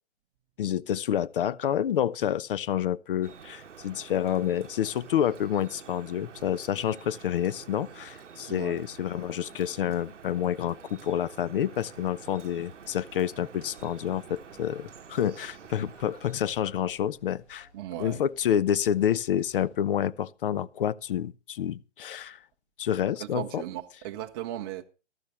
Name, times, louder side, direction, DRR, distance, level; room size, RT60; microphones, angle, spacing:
voice 1, 0.6-17.7 18.0-22.4 22.8-23.6, left 10 dB, 50° left, 0.5 m, -28 dB
Drip, 3.2-16.5, right 7 dB, 85° right, 0.8 m, -48 dB
voice 2, 8.5-8.8 17.7-18.2 23.0-24.8, right 12 dB, 20° right, 0.6 m, -37 dB
sound 1, 11.7-19.8, left 2 dB, 35° left, 7.4 m, -60 dB
15.0 x 12.5 x 3.1 m
hypercardioid pair, 135°, 35 cm